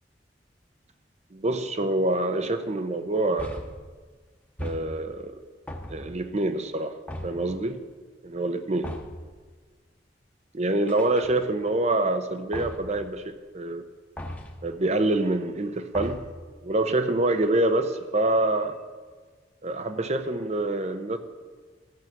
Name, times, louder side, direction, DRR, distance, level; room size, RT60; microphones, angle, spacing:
voice 1, 1.3-3.6 4.6-5.4 5.9-6.9 7.2-7.8 8.2-8.9 10.5-13.8 14.6-16.2 16.6-18.8 19.6-21.2, right 2 dB, 40° right, 9 dB, 0.8 m, -26 dB
sound 1, 3.4-3.9 4.6-5.2 5.7-6.3 7.1-7.6 8.8-9.3 10.9-11.7 12.5-13.0 14.2-14.7 15.9-16.5, equal, 10° left, 1.0 m, -38 dB
13.5 x 7.5 x 6.0 m, 1.4 s
head